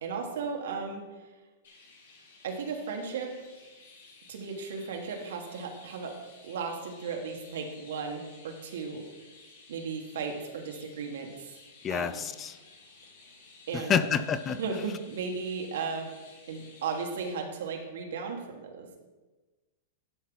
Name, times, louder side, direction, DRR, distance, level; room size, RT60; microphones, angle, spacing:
voice 1, 0.0-1.0 2.4-3.3 4.3-6.1 6.4-9.0 9.7-11.3 11.9-12.2 13.7-14.1 14.6-16.1 16.5-18.9, right 5 dB, 75° right, 2 dB, 1.6 m, -35 dB
Chirp tweet, 1.6-17.4, left 3 dB, 80° left, 2.8 m, -55 dB
voice 2, 11.8-12.6 13.7-14.6, left 7 dB, 20° left, 13 dB, 0.3 m, -28 dB
11.5 x 5.7 x 3.9 m, 1.2 s
hypercardioid pair, 145°, 0 cm